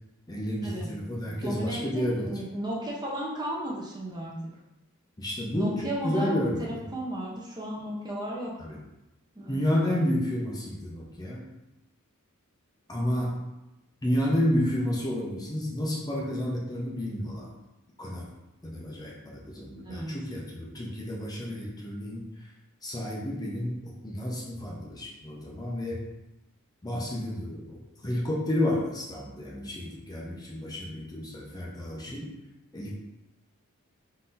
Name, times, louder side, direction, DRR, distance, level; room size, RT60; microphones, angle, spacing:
voice 1, 0.3-2.3 5.2-6.9 8.6-8.8 9.5-11.5 12.9-13.4 14.0-17.5 18.0-18.3 18.6-22.5 22.8-26.0 26.8-32.3 32.7-32.9, left 1 dB, 20° left, -4 dB, 0.7 m, -31 dB
voice 2, 1.2-4.4 5.5-6.3 6.6-8.5 9.3-9.6 19.8-20.1, right 1 dB, 20° right, -3 dB, 0.7 m, -34 dB
3.8 x 2.7 x 3.9 m, 0.97 s
head